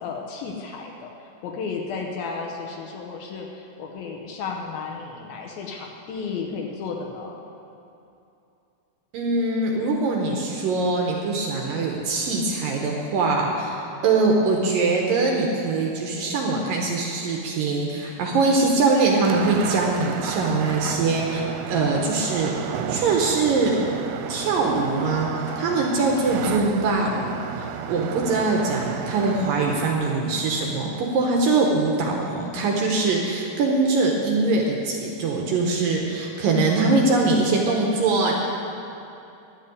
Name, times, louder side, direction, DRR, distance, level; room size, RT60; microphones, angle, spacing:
voice 1, 0.0-7.4 31.7-31.8, left 5 dB, 70° left, 1 dB, 2.4 m, -33 dB
voice 2, 9.1-13.8 14.0-21.4 21.7-23.8 24.3-27.3 27.6-38.3, right 3 dB, 70° right, 0 dB, 2.3 m, -22 dB
sound 1, 19.2-29.9, right 7 dB, 85° right, 2.7 m, -32 dB
11.0 x 7.3 x 9.4 m, 2.8 s
omnidirectional pair, 4.9 m